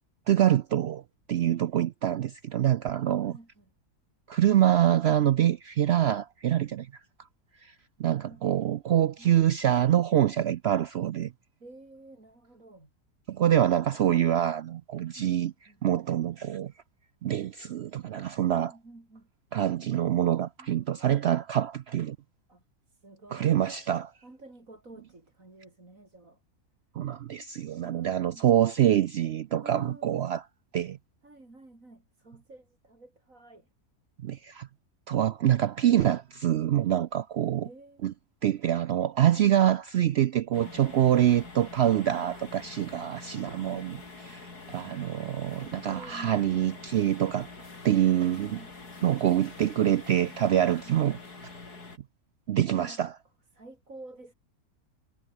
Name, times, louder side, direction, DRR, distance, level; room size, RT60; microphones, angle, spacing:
voice 1, 0.3-1.0 1.3-3.3 4.3-6.9 7.6-7.7 8.0-11.3 13.3-15.5 15.8-16.7 17.2-18.7 19.5-22.2 23.3-24.1 27.0-30.4 30.7-31.0 34.2-34.7 35.1-37.7 38.0-38.1 38.4-44.0 44.2-47.5 47.8-48.6 49.0-51.2 52.5-53.1, right 11 dB, 75° right, 0.6 m, -25 dB
voice 2, 3.2-3.7 8.3-8.4 9.2-9.3 11.6-12.9 15.2-15.8 18.6-19.3 20.6-21.1 22.5-23.6 24.2-26.4 27.8-28.5 29.6-30.3 31.2-33.7 37.6-38.1 39.3-39.7 43.3-44.0 45.6-46.4 47.8-48.7 52.7-53.0 53.5-54.3, right 2 dB, 55° right, 5.5 m, -50 dB
sound 1, 40.5-52.0, left 3 dB, 80° left, 4.4 m, -46 dB
omnidirectional pair, 1.6 m